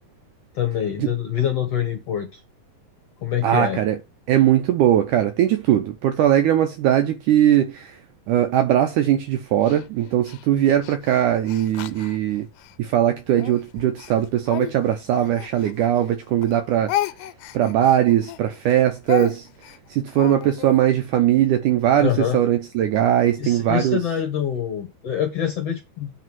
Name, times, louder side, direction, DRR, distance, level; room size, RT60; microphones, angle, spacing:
voice 1, 0.6-2.4 3.2-3.8 22.0-22.4 23.4-26.1, left 9 dB, 65° left, 1.6 m, -25 dB
voice 2, 3.4-4.0 4.3-7.9 8.3-12.5 12.8-16.9 17.5-19.5 19.9-24.0, right 11 dB, 75° right, 1.9 m, -20 dB
Speech, 9.6-12.8 13.3-16.1 16.4-20.8, left 12 dB, 85° left, 2.6 m, -33 dB
9.3 x 3.6 x 6.2 m
omnidirectional pair, 4.4 m